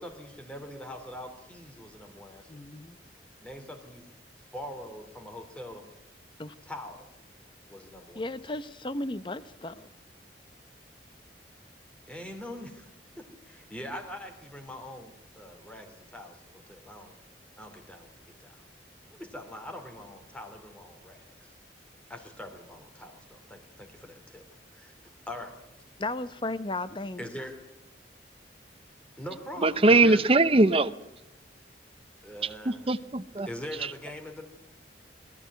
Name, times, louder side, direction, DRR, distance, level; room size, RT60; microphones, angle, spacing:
voice 1, 0.0-2.6 3.4-4.0 4.5-5.9 6.6-7.1 7.7-8.4 12.1-12.9 13.2-17.1 17.6-18.6 19.1-21.5 22.1-24.4 24.7-25.6 27.2-27.5 29.2-30.3 32.2-32.9 33.5-34.5, left 1 dB, 5° left, 2.9 m, -43 dB
voice 2, 2.5-3.0 6.4-6.5 8.1-9.9 26.0-27.3, left 2 dB, 30° left, 0.8 m, -35 dB
voice 3, 29.6-30.9 32.7-33.5, right 2 dB, 35° right, 0.8 m, -21 dB
21.0 x 14.0 x 9.4 m
head